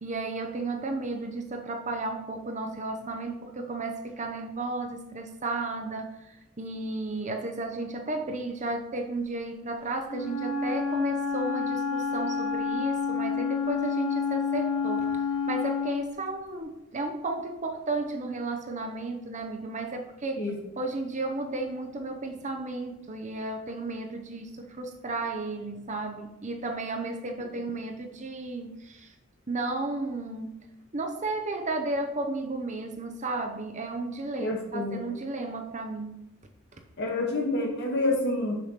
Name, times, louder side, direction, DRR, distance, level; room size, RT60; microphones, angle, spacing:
voice 1, 0.0-6.3 6.6-20.5 20.8-29.1 29.5-30.6 30.9-36.2, right 2 dB, 35° right, 4 dB, 0.8 m, -33 dB
Wind instrument woodwind instrument, 10.1-16.1, left 5 dB, 90° left, 2.1 m, -29 dB
voice 2, 34.4-35.0 37.0-38.5, left 2 dB, 50° left, -1 dB, 2.0 m, -28 dB
6.7 x 4.9 x 5.9 m, 0.91 s
head